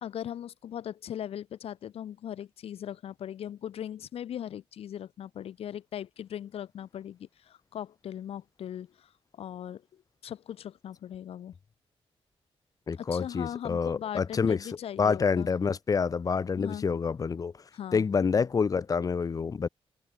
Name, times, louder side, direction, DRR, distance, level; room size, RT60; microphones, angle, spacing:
voice 1, 0.0-11.6 13.0-15.5 16.6-16.8 17.7-18.1, left 10 dB, 85° left, 1.3 m, -39 dB
voice 2, 12.9-14.6 15.0-17.5 17.9-19.7, left 5 dB, 40° left, 0.9 m, -27 dB
wide cardioid pair, 130°, 10 cm